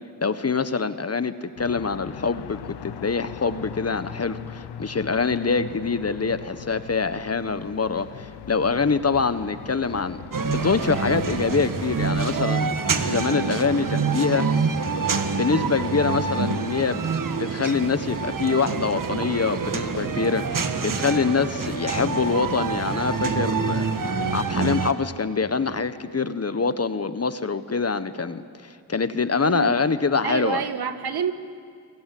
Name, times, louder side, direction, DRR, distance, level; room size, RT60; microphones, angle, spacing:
voice 1, 0.2-12.7 13.0-14.5 15.4-23.9 24.3-30.6, left 4 dB, 40° left, 12 dB, 1.3 m, -25 dB
sound 1, 1.6-12.2, left 10 dB, 85° left, 0.8 m, -40 dB
sound 2, 10.3-24.9, right 5 dB, 55° right, 1.7 m, -26 dB
voice 2, 29.4-29.7 30.2-31.3, right 7 dB, 75° right, 9 dB, 1.6 m, -27 dB
28.5 x 21.5 x 8.6 m, 2.2 s
cardioid pair, 60°, 39 cm